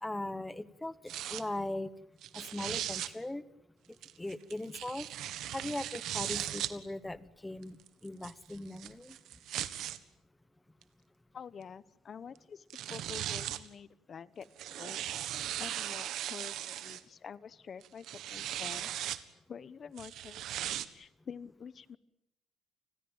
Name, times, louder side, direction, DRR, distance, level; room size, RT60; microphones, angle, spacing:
voice 1, 0.0-1.9 2.3-3.4 4.2-5.1 5.5-9.2, left 1 dB, 10° left, 15 dB, 1.2 m, -39 dB
sound 1, 1.1-1.4 2.2-3.1 4.0-6.7 7.6-10.0 10.8-10.9 12.4-12.5 12.7-13.7 14.4-17.0 17.8-19.2 20.0-20.9, right 12 dB, 65° right, 1.6 m, -38 dB
voice 2, 11.3-15.0 15.6-18.9 19.5-22.0, left 7 dB, 35° left, 16 dB, 1.1 m, -48 dB
29.5 x 21.0 x 9.0 m, 0.83 s
cardioid pair, 150°, 0 cm